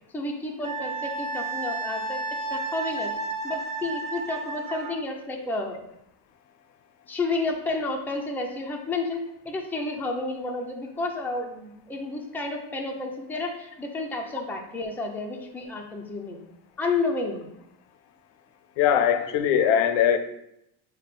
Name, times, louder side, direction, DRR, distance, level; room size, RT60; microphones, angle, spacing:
voice 1, 0.1-2.2 2.5-3.1 3.4-5.8 7.1-16.4 16.8-17.4, left 3 dB, 5° left, 1 dB, 0.5 m, -31 dB
Wind instrument woodwind instrument, 0.6-5.0, right 3 dB, 15° right, 1.1 m, -32 dB
voice 2, 18.8-20.2, left 9 dB, 70° left, 9 dB, 0.5 m, -21 dB
5.0 x 2.2 x 4.1 m, 0.79 s
cardioid pair, 105°, 45 cm